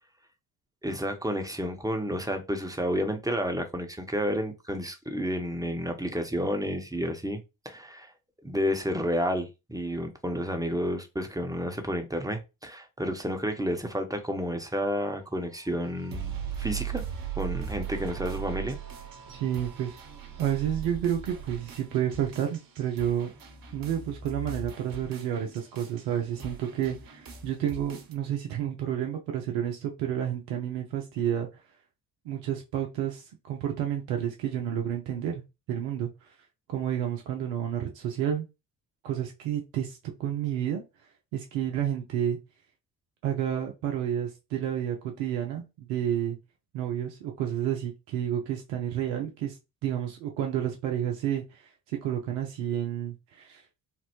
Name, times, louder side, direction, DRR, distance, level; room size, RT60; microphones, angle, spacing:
voice 1, 0.8-7.4 7.6-8.1 8.4-17.0 17.4-18.8, equal, 10° right, 0.8 m, -31 dB
sound 1, 15.2-28.1, right 8 dB, 50° right, 0.8 m, -39 dB
voice 2, 19.3-20.0 20.4-23.3 23.7-31.5 32.3-36.1 36.7-38.5 39.0-40.8 41.3-42.4 43.2-46.4 46.7-49.6 49.8-53.6, right 10 dB, 85° right, 0.6 m, -30 dB
3.2 x 2.1 x 3.0 m
hypercardioid pair, 40°, 44 cm